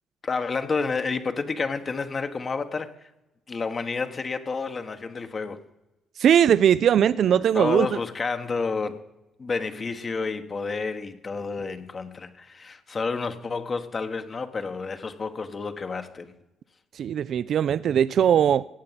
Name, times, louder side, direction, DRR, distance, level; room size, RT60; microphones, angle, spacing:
voice 1, 0.2-2.9 3.5-5.6 7.3-9.0 9.4-16.3, left 4 dB, 45° left, 1.1 m, -30 dB
voice 2, 6.2-7.9 17.0-18.7, right 9 dB, 65° right, 0.3 m, -20 dB
16.5 x 7.7 x 5.7 m
supercardioid pair, 55°, 0 cm